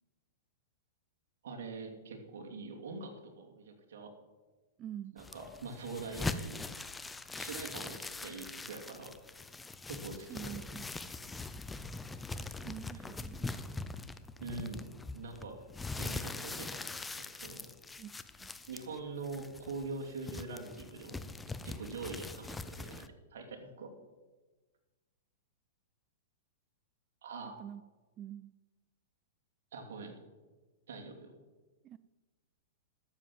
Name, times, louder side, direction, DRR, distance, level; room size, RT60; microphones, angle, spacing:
voice 1, 1.4-4.1 5.1-6.6 7.3-9.2 9.9-10.8 14.4-15.6 16.0-17.7 18.7-23.9 27.2-27.6 29.7-30.1 30.9-31.4, right 3 dB, 75° right, 2 dB, 2.9 m, -44 dB
voice 2, 4.8-5.2 10.3-10.9 12.6-13.5 18.0-18.1 18.4-18.5 27.4-27.8 28.2-28.5 31.8-32.0, right 10 dB, 30° right, 16 dB, 0.3 m, -45 dB
sound 1, 5.2-23.1, left 3 dB, 10° left, 0.7 m, -42 dB
13.0 x 7.6 x 7.5 m, 1.3 s
hypercardioid pair, 135°, 0 cm